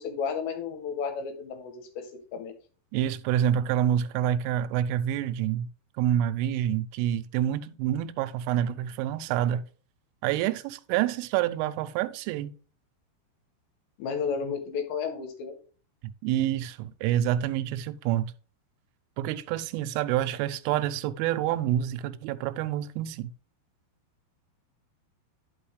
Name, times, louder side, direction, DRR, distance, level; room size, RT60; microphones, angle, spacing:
voice 1, 0.0-2.5 14.0-15.5, left 6 dB, 80° left, 2.7 m, -32 dB
voice 2, 2.9-5.7 6.0-9.6 10.2-12.5 16.2-18.3 19.2-23.3, right 11 dB, 85° right, 2.9 m, -27 dB
10.5 x 5.5 x 3.2 m
omnidirectional pair, 5.9 m